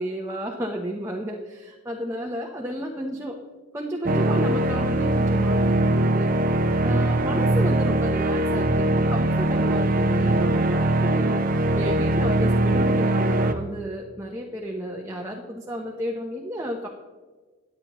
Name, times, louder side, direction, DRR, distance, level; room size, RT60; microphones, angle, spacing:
voice 1, 0.0-3.4 3.7-6.4 6.8-16.9, equal, 15° right, -1 dB, 0.9 m, -32 dB
sound 1, 4.0-13.5, right 1 dB, 45° right, 0.7 m, -21 dB
24.0 x 8.7 x 3.1 m, 1.4 s
head